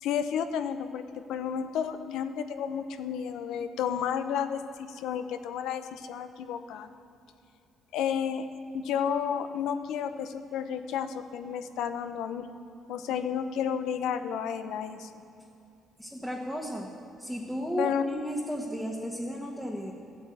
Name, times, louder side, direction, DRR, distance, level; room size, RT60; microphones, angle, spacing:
voice 1, 0.0-6.9 7.9-8.5 8.7-12.5 12.9-15.1 17.8-18.0, left 8 dB, 85° left, 10 dB, 0.9 m, -32 dB
voice 2, 16.0-16.9 17.2-19.9, equal, ahead, -2 dB, 1.3 m, -34 dB
14.5 x 8.5 x 9.1 m, 2.6 s
cardioid pair, 135°, 0 cm